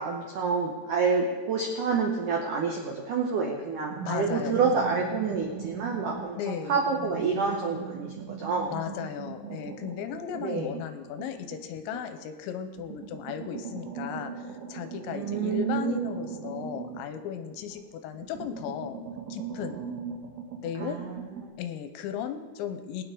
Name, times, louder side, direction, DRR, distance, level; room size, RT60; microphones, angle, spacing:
voice 1, 0.0-8.7 10.4-10.7 15.1-16.1 20.8-21.2, right 5 dB, 80° right, 0 dB, 1.8 m, -28 dB
sound 1, 3.9-6.4 6.7-12.3 12.8-17.8 18.1-21.5, right 6 dB, 65° right, 3.4 m, -40 dB
voice 2, 4.0-4.9 6.4-6.7 8.7-19.0 19.3-19.8 20.6-21.0 21.6-23.0, left 9 dB, 85° left, 8 dB, 3.0 m, -36 dB
21.0 x 9.5 x 3.8 m, 1.3 s
omnidirectional pair, 5.4 m